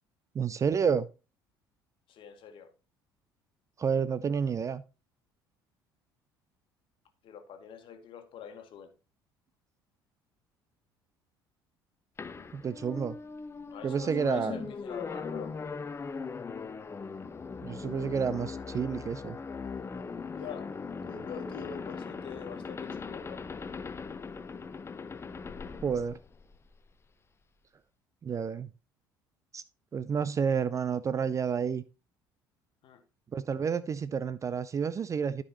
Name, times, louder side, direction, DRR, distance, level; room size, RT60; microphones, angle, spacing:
voice 1, 0.3-1.1 3.8-4.8 12.5-13.2 13.8-14.6 17.6-19.4 25.8-26.2 28.2-28.7 29.5-29.6 29.9-31.8 33.3-35.4, right 6 dB, 25° right, 0.4 m, -30 dB
voice 2, 2.1-2.7 7.2-8.9 13.7-15.5 20.3-23.4 32.8-33.0, left 7 dB, 45° left, 1.6 m, -44 dB
sound 1, 12.2-26.9, left 5 dB, 20° left, 0.7 m, -40 dB
13.0 x 5.3 x 3.0 m
figure-of-eight pair, 55°, 12 cm